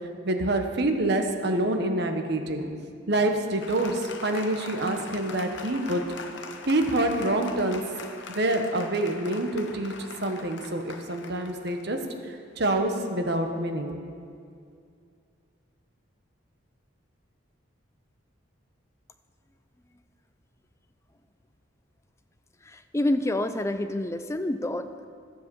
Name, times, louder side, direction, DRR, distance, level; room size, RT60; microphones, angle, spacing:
voice 1, 0.2-2.7 3.1-6.0 6.7-7.8 8.3-9.9 10.2-12.0 12.6-14.0, right 1 dB, 50° right, 5 dB, 1.1 m, -26 dB
Applause, 3.6-12.6, left 4 dB, 60° left, 0.9 m, -42 dB
voice 2, 22.6-25.0, left 1 dB, 15° left, 9 dB, 0.4 m, -28 dB
12.5 x 7.8 x 7.0 m, 2.3 s
head